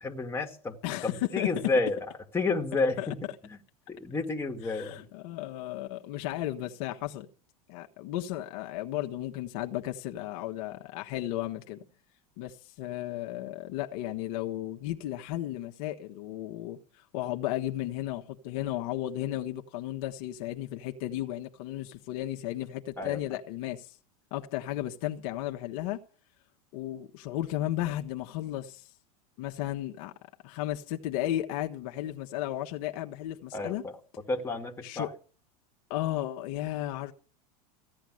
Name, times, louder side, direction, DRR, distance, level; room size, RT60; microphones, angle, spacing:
voice 1, 0.0-0.7 1.0-2.0 2.3-3.2 3.4-3.6 3.9-5.0 23.0-23.2 33.5-33.9 34.3-35.1, left 3 dB, 10° left, 2.4 m, -30 dB
voice 2, 0.8-1.5 3.0-3.1 4.7-7.3 7.7-11.8 12.4-24.0 24.3-26.0 26.7-28.9 29.4-30.1 30.4-33.8 34.8-35.1 35.9-37.1, left 14 dB, 60° left, 1.4 m, -34 dB
15.5 x 10.5 x 6.5 m
supercardioid pair, 120°, 20 cm